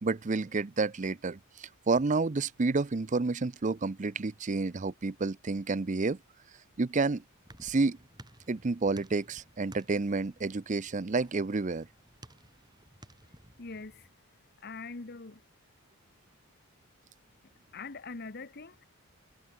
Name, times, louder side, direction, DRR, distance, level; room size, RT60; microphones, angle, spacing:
voice 1, 0.0-6.2 6.8-7.2 7.6-8.0 8.5-11.9, right 3 dB, 35° right, 0.5 m, -30 dB
sound 1, 7.2-14.1, right 1 dB, 20° right, 5.5 m, -56 dB
voice 2, 13.6-15.4 17.7-18.9, left 3 dB, 45° left, 1.0 m, -43 dB
head